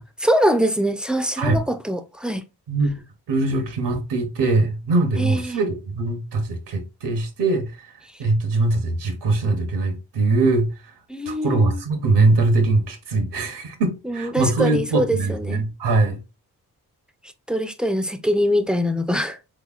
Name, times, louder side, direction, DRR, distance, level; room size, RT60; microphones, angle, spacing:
voice 1, 0.0-2.4 5.2-5.6 11.1-11.8 14.0-15.6 17.5-19.4, equal, ahead, 0.3 m, -23 dB
voice 2, 2.7-7.7 8.2-10.7 11.3-16.2, right 3 dB, 85° right, 1.0 m, -22 dB
3.5 x 3.0 x 2.3 m
cardioid pair, 55°, 40 cm